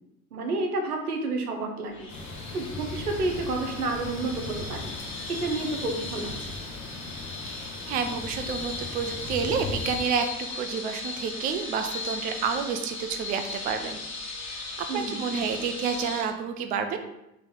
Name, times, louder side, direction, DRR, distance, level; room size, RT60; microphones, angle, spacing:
voice 1, 0.3-2.1 2.5-4.9 5.3-6.5 14.9-15.2, right 2 dB, 85° right, 3 dB, 0.8 m, -30 dB
sound 1, 1.9-16.2, left 3 dB, 25° left, 1.2 m, -37 dB
sound 2, 2.1-10.0, left 3 dB, 65° left, 1.6 m, -39 dB
voice 2, 7.5-10.3 10.5-14.0 14.4-17.0, right 6 dB, 20° right, 6 dB, 0.3 m, -30 dB
4.1 x 3.1 x 3.6 m, 0.87 s
hypercardioid pair, 75°, 44 cm